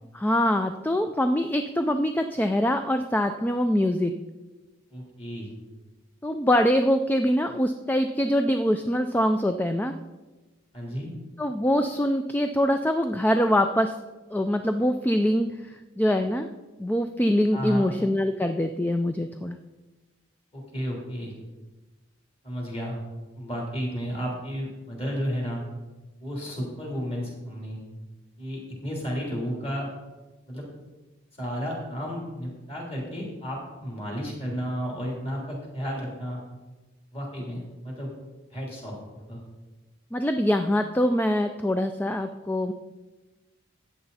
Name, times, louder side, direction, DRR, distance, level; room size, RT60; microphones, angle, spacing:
voice 1, 0.1-4.2 6.2-10.0 11.4-14.0 14.3-16.5 16.8-19.6 40.1-42.7, equal, 10° left, 7 dB, 0.3 m, -24 dB
voice 2, 4.9-5.5 10.7-11.1 17.5-17.9 20.5-21.3 22.4-23.0 23.3-25.6 26.2-27.8 28.4-29.9 30.5-30.6 31.4-36.4 37.1-38.1 38.5-39.4, equal, 30° left, -2 dB, 3.4 m, -32 dB
14.0 x 8.6 x 4.2 m, 1.2 s
head